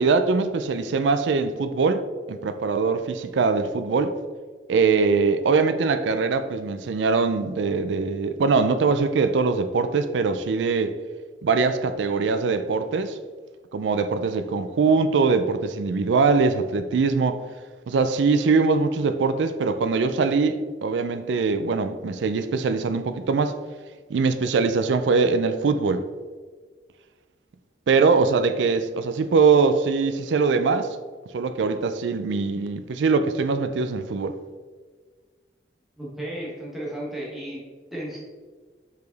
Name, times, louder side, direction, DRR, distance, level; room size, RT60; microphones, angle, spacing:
voice 1, 0.0-4.2 4.7-10.9 11.4-13.2 13.7-17.4 17.9-23.6 24.1-26.1 27.9-31.0 31.3-34.4, right 4 dB, 85° right, 0.4 m, -22 dB
voice 2, 36.0-37.6 37.9-38.2, right 1 dB, ahead, 1.3 m, -33 dB
5.0 x 4.8 x 3.9 m
head